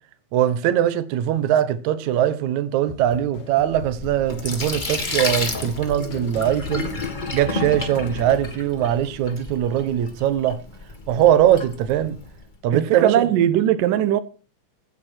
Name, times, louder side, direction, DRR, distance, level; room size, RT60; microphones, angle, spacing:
voice 1, 0.3-6.9 7.3-10.6 11.1-12.2 12.6-13.2, right 11 dB, 70° right, 2.3 m, -21 dB
sound 1, 2.9-8.5, left 6 dB, 80° left, 3.0 m, -39 dB
Sink (filling or washing), 3.6-12.4, left 3 dB, 25° left, 1.1 m, -31 dB
voice 2, 12.7-14.2, right 11 dB, 85° right, 2.4 m, -19 dB
16.0 x 9.8 x 4.4 m
omnidirectional pair, 3.8 m